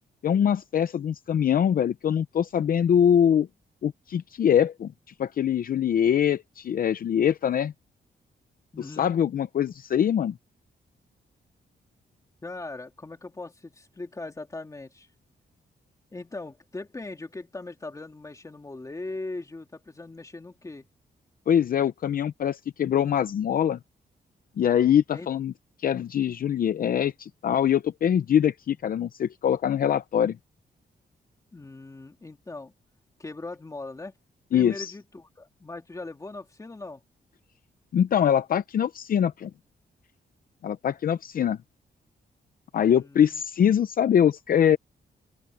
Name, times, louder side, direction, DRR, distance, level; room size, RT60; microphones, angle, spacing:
voice 1, 0.2-3.5 3.8-4.9 5.2-7.7 9.0-10.4 21.5-23.8 24.6-25.5 25.8-30.4 34.5-34.9 37.9-39.5 40.6-41.6 42.7-44.8, left 9 dB, 55° left, 0.6 m, -23 dB
voice 2, 8.7-9.1 12.4-15.1 16.1-20.9 25.1-25.3 31.5-32.7 33.2-34.2 34.5-37.0 42.9-43.4, left 2 dB, 20° left, 2.7 m, -39 dB
open air
wide cardioid pair, 140°, 18 cm